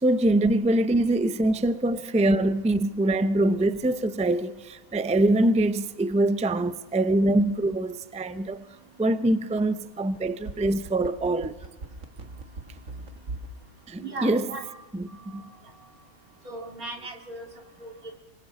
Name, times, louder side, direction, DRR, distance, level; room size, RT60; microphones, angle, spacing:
voice 1, 0.0-8.6 9.0-11.6 13.9-14.5 14.9-15.4, right 1 dB, 10° right, 0.4 m, -24 dB
sound 1, 10.1-13.6 13.9-14.0, right 3 dB, 65° right, 2.1 m, -38 dB
voice 2, 14.0-14.8 15.3-15.4 16.4-17.5 17.8-17.9, right 2 dB, 90° right, 3.3 m, -37 dB
25.5 x 24.5 x 4.2 m
omnidirectional pair, 1.5 m